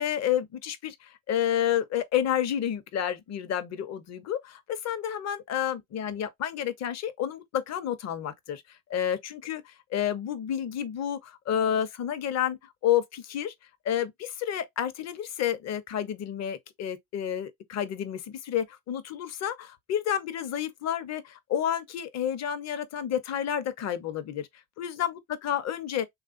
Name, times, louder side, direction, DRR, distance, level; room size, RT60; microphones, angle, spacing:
voice 1, 0.0-12.6 12.8-13.5 13.8-24.5 24.8-26.1, left 10 dB, 40° left, 0.7 m, -30 dB
3.2 x 2.3 x 2.4 m
supercardioid pair, 80°, 41 cm